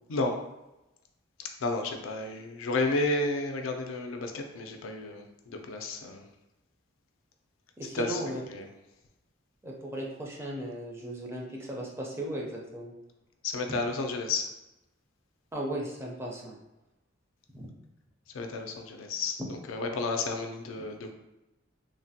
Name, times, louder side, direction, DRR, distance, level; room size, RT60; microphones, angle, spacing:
voice 1, 0.1-0.4 1.6-6.2 7.9-8.7 13.4-14.5 18.3-21.1, left 3 dB, 90° left, 4 dB, 0.4 m, -32 dB
voice 2, 7.8-8.4 9.6-12.9 13.7-13.8 15.5-16.5 17.5-17.7 19.4-19.5, right 1 dB, 15° right, -2 dB, 0.4 m, -36 dB
3.1 x 2.1 x 2.7 m, 0.95 s
head